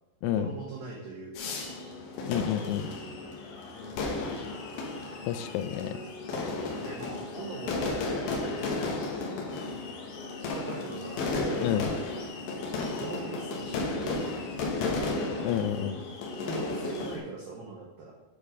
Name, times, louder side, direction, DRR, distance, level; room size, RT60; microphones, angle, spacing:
voice 1, 0.3-1.7 3.7-4.5 6.2-8.7 9.1-9.6 10.4-11.9 13.0-15.0 15.8-16.1 16.5-18.1, right 3 dB, 90° right, -1 dB, 2.0 m, -42 dB
sound 1, 1.3-17.2, left 3 dB, 65° left, 2.5 m, -34 dB
voice 2, 2.3-2.9 5.3-6.0 11.6-11.9 15.4-16.0, left 11 dB, 85° left, 11 dB, 2.9 m, -29 dB
9.2 x 5.0 x 5.0 m, 1.0 s
omnidirectional pair, 5.5 m